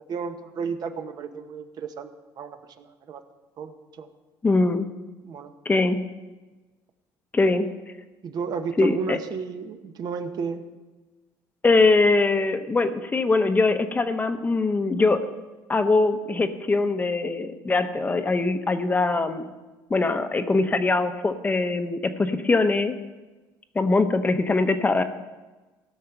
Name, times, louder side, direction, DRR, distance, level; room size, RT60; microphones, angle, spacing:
voice 1, 0.1-2.1 2.4-3.2 3.6-3.7 4.0-4.1 5.2-5.5 8.2-10.7, right 5 dB, 55° right, 8 dB, 1.1 m, -33 dB
voice 2, 4.4-4.9 5.6-6.0 7.3-7.7 8.8-9.2 11.6-15.3 15.7-19.5 19.9-22.9 23.7-25.0, left 3 dB, 20° left, 9 dB, 0.8 m, -22 dB
16.0 x 6.5 x 5.9 m, 1.2 s
cardioid pair, 105°, 8 cm